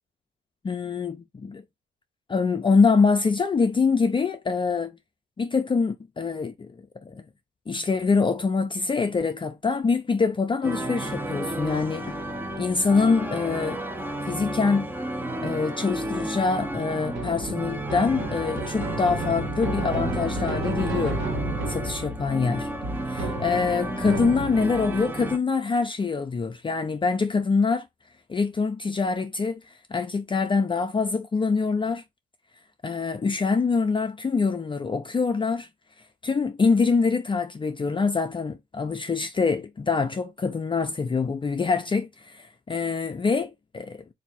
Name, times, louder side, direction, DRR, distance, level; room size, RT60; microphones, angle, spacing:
voice 1, 0.6-1.6 2.3-4.9 5.4-6.7 7.1-7.2 7.7-12.2 12.6-13.8 14.3-14.9 15.4-21.2 21.7-22.7 23.1-27.9 28.3-29.6 29.9-32.0 32.8-35.7 36.2-44.1, left 4 dB, 25° left, 0.5 m, -25 dB
sound 1, 10.6-25.4, right 1 dB, 10° right, 0.7 m, -32 dB
sound 2, 17.1-24.9, right 2 dB, 75° right, 1.4 m, -32 dB
3.4 x 2.7 x 4.1 m
cardioid pair, 90°, 20 cm